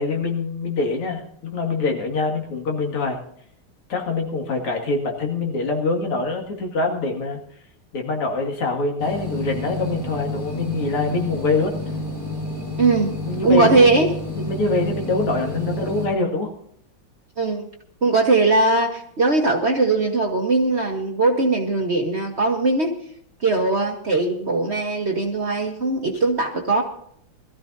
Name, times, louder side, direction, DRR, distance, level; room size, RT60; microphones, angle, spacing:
voice 1, 0.0-3.2 3.9-7.4 7.9-11.7 13.3-13.9 14.3-16.5, left 3 dB, 90° left, 2 dB, 3.0 m, -24 dB
sound 1, 9.0-16.1, left 1 dB, 65° left, 6.6 m, -30 dB
voice 2, 12.8-13.1 13.4-14.1 17.4-17.7 18.0-22.9 23.4-26.8, right 3 dB, 40° right, 2 dB, 1.1 m, -20 dB
21.5 x 14.0 x 2.7 m, 0.66 s
omnidirectional pair, 2.4 m